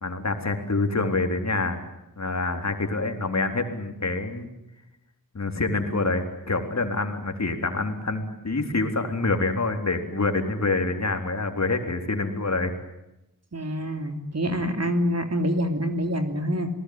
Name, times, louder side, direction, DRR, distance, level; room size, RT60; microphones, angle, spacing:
voice 1, 0.0-1.8 2.2-4.5 5.3-12.8, left 3 dB, 50° left, 6 dB, 3.8 m, -26 dB
voice 2, 13.5-16.7, equal, 45° right, 7 dB, 3.4 m, -26 dB
28.5 x 19.0 x 9.8 m, 0.89 s
wide cardioid pair, 75°, 34 cm